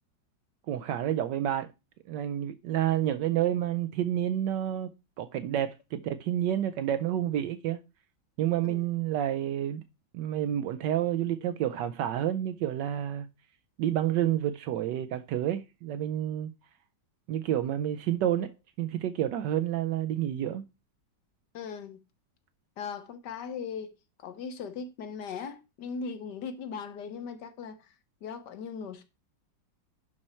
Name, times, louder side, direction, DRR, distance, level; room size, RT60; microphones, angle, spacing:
voice 1, 0.7-1.7 2.1-4.9 5.2-7.8 8.4-9.8 10.1-13.3 13.8-16.5 17.3-18.5 18.8-20.6, right 11 dB, 75° right, 1.2 m, -29 dB
voice 2, 21.5-22.0 22.8-23.9 24.2-27.9 28.2-29.0, left 6 dB, 70° left, 1.6 m, -39 dB
11.0 x 4.3 x 4.3 m
omnidirectional pair, 2.0 m